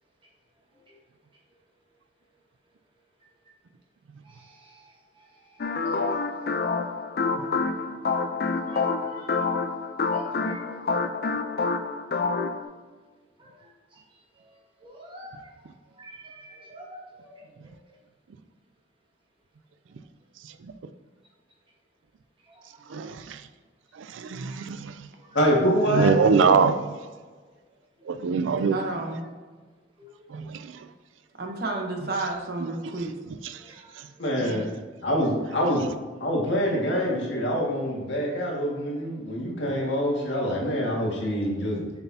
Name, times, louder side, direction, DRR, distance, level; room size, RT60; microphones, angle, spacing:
sound 1, 5.6-12.6, left 4 dB, 50° left, 0.4 m, -27 dB
voice 1, 5.8-6.8 8.7-9.4 10.1-10.6 14.9-15.4 16.0-16.2 16.7-17.3, right 1 dB, 25° right, 1.3 m, -45 dB
voice 2, 22.9-23.4 23.9-25.1 25.9-26.8 28.1-28.8 30.3-30.9 32.6-32.7 33.4-33.6 34.0-34.1 34.4-34.6, right 5 dB, 85° right, 0.4 m, -24 dB
voice 3, 25.3-26.6 34.2-34.7 35.0-35.8 36.2-41.9, equal, 75° left, 1.8 m, -25 dB
voice 4, 28.7-29.3 31.4-33.1, right 2 dB, 55° right, 1.0 m, -31 dB
7.0 x 5.9 x 2.8 m
head